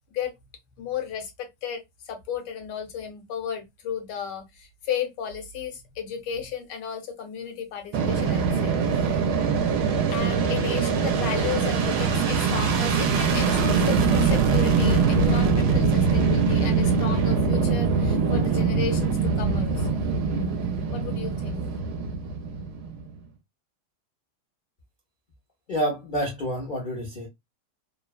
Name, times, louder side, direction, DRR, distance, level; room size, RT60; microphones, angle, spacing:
voice 1, 0.8-9.2 10.1-20.0 20.9-21.6, left 7 dB, 80° left, 1.4 m, -34 dB
Fixed-wing aircraft airplane, 7.9-23.1, right 5 dB, 75° right, 1.1 m, -23 dB
voice 2, 25.7-27.3, equal, 55° left, 0.5 m, -28 dB
3.1 x 2.0 x 2.3 m
omnidirectional pair, 1.8 m